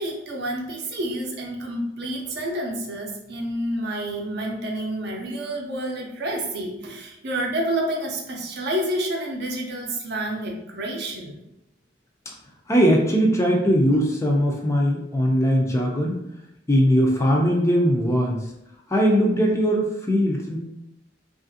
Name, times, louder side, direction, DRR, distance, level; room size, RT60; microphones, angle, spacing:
voice 1, 0.0-11.4, right 1 dB, 60° right, 0 dB, 0.6 m, -29 dB
voice 2, 12.7-16.2 16.7-18.4 18.9-20.6, equal, 15° left, -1 dB, 0.4 m, -20 dB
2.8 x 2.5 x 2.6 m, 0.85 s
head